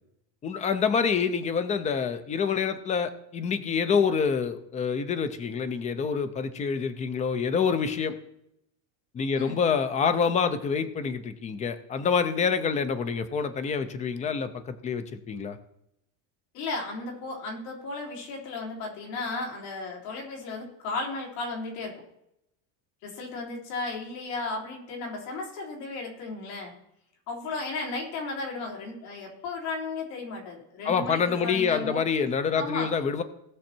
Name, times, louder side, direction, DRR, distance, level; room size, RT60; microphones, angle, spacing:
voice 1, 0.4-8.2 9.1-15.6 30.8-33.2, left 6 dB, 15° left, 11 dB, 0.4 m, -27 dB
voice 2, 16.5-21.9 23.0-26.7 27.3-32.1 32.5-32.9, left 3 dB, 70° left, -1 dB, 4.0 m, -34 dB
18.0 x 6.4 x 4.4 m, 0.81 s
cardioid pair, 175°, 46 cm